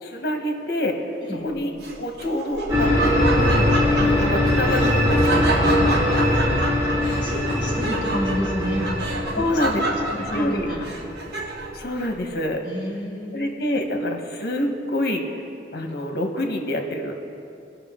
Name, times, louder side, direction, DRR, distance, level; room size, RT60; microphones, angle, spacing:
voice 1, 0.0-1.0 1.3-1.7 2.0-3.7 4.0-6.5 9.3-9.8 10.2-10.7 11.7-12.6 13.3-15.4 15.7-17.1, left 1 dB, 60° left, 4 dB, 1.0 m, -27 dB
Laughter, 1.8-11.8, right 2 dB, 70° right, 1.0 m, -29 dB
sound 1, 2.7-11.6, left 1 dB, 20° right, 2.0 m, -22 dB
voice 2, 7.1-8.9 9.4-10.9 12.6-13.5, equal, 25° left, -2 dB, 1.9 m, -30 dB
17.5 x 5.9 x 3.6 m, 2.6 s
head